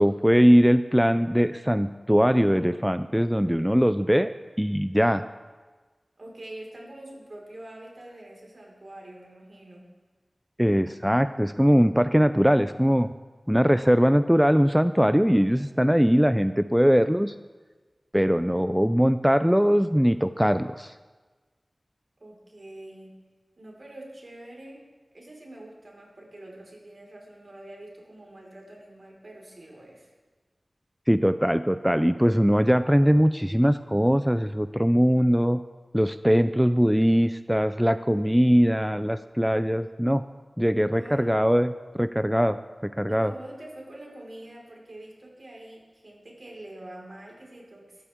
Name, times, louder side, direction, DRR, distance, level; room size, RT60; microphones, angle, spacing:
voice 1, 0.0-4.3 4.6-5.2 10.6-13.1 13.5-17.3 18.1-20.9 31.1-35.6 35.9-40.2 40.6-43.3, equal, 5° right, 11 dB, 0.4 m, -21 dB
voice 2, 6.2-9.9 22.2-23.1 23.6-24.8 25.1-30.1 40.9-41.4 43.1-48.1, right 1 dB, 60° right, -2 dB, 4.8 m, -45 dB
23.0 x 13.5 x 3.7 m, 1.3 s
wide cardioid pair, 65°, 0 cm